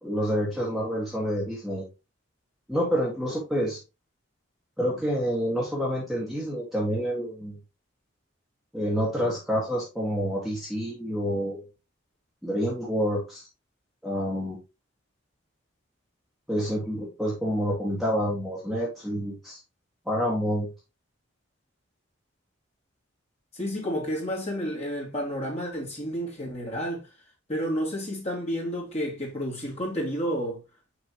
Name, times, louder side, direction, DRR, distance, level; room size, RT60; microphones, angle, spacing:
voice 1, 0.0-1.8 2.7-3.8 4.8-7.6 8.7-11.6 12.4-13.4 14.0-14.6 16.5-19.6 20.1-20.7, equal, ahead, 1.9 m, -28 dB
voice 2, 23.5-27.0 27.5-30.6, equal, 30° left, 2.8 m, -30 dB
6.7 x 5.4 x 3.1 m
head